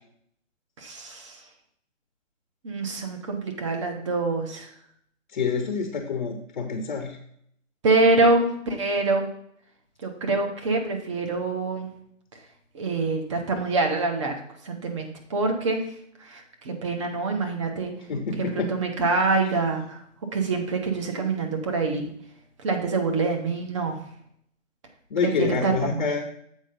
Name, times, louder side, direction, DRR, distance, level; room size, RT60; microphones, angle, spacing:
voice 1, 0.8-1.4 2.6-4.7 7.8-9.3 10.0-11.9 12.7-15.8 16.2-17.9 18.4-20.0 20.3-22.1 22.6-24.0 25.2-26.2, right 3 dB, 25° right, 3 dB, 0.9 m, -25 dB
voice 2, 5.3-7.2 18.1-18.7 25.1-26.3, left 5 dB, 40° left, 3 dB, 0.8 m, -27 dB
7.4 x 4.3 x 5.1 m, 0.68 s
figure-of-eight pair, 150°, 38 cm